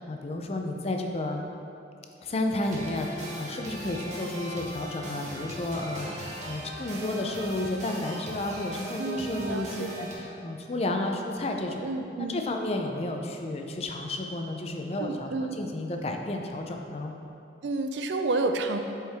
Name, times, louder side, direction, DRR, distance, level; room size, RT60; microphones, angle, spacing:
voice 1, 0.0-1.5 2.2-11.8 12.3-17.2, left 2 dB, 35° left, 3 dB, 0.4 m, -32 dB
sound 1, 2.6-10.1, equal, 40° right, 1.0 m, -39 dB
voice 2, 9.0-9.9 11.8-12.4 15.0-15.6 17.6-18.8, right 3 dB, 75° right, 6 dB, 0.4 m, -30 dB
7.5 x 4.6 x 3.5 m, 2.7 s
head